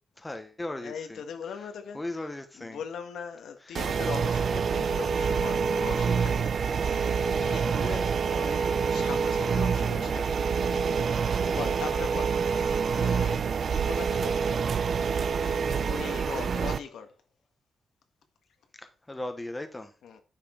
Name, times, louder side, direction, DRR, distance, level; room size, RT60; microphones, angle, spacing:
voice 1, 0.2-1.2 1.6-2.8 3.6-3.8 18.8-19.9, left 1 dB, 10° left, 1.0 m, -38 dB
voice 2, 0.8-2.0 2.6-14.5 15.0-17.1 20.0-20.2, left 6 dB, 90° left, 1.6 m, -40 dB
sound 1, 3.7-16.8, right 6 dB, 45° right, 0.5 m, -27 dB
9.9 x 5.9 x 4.4 m
wide cardioid pair, 175°, 0 cm